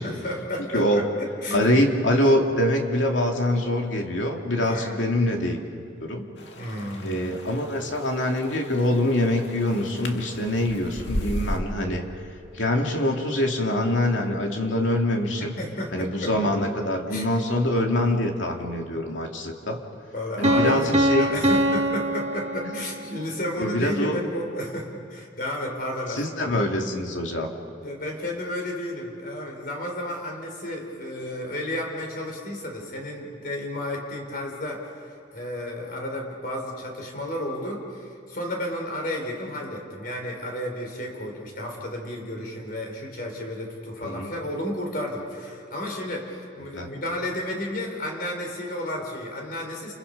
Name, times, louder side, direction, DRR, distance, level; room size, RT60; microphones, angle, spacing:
voice 1, 0.0-1.7 4.6-5.0 6.6-7.1 15.6-16.5 17.1-17.3 20.1-26.6 27.8-49.9, left 1 dB, 50° left, 1 dB, 4.4 m, -32 dB
voice 2, 0.7-1.1 1.5-5.6 6.0-6.2 7.0-12.1 12.5-15.5 15.9-19.8 20.4-21.3 22.7-22.8 23.6-24.2 26.2-27.5 44.0-44.3 46.7-46.9, left 1 dB, 90° left, 2 dB, 2.7 m, -24 dB
sound 1, 6.4-11.6, left 1 dB, 65° left, 2.2 m, -36 dB
Piano, 20.4-23.2, right 1 dB, 35° right, 1.4 m, -23 dB
29.5 x 28.5 x 5.5 m, 2.4 s
head